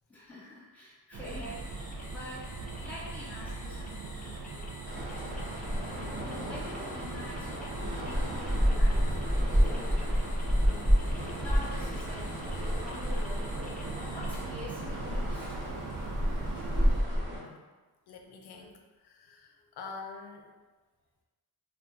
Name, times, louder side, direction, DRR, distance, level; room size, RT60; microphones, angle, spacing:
voice 1, 0.1-2.4 2.8-4.7 5.0-5.3 6.5-10.9 11.4-12.4 12.8-13.5 14.1-15.6 19.6-19.7, left 1 dB, 5° left, -10 dB, 1.1 m, -46 dB
sound 1, 1.1-17.0, right 3 dB, 55° right, 0.5 m, -40 dB
sound 2, 1.2-14.5, left 2 dB, 20° left, 0.4 m, -50 dB
sound 3, 4.9-17.4, equal, 30° right, 0.9 m, -30 dB
voice 2, 17.3-17.7 18.1-20.5, left 4 dB, 90° left, 2 dB, 0.5 m, -46 dB
2.3 x 2.2 x 3.9 m, 1.3 s
wide cardioid pair, 110°, 37 cm